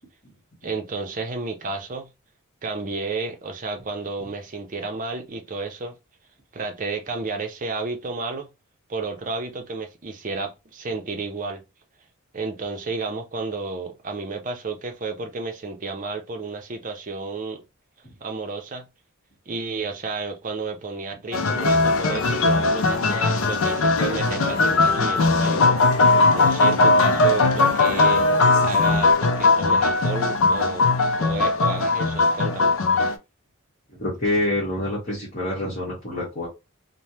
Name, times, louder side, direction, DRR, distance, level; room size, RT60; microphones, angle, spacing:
voice 1, 0.6-2.1 2.6-6.0 6.5-8.5 8.9-11.6 12.3-17.6 18.2-18.8 19.5-25.8 26.3-28.2 28.6-30.9 31.2-32.8, right 3 dB, 40° right, 0.6 m, -31 dB
sound 1, 21.3-33.1, left 3 dB, 75° left, 0.5 m, -19 dB
voice 2, 34.0-36.5, left 1 dB, 40° left, 1.2 m, -26 dB
3.2 x 2.1 x 2.7 m
head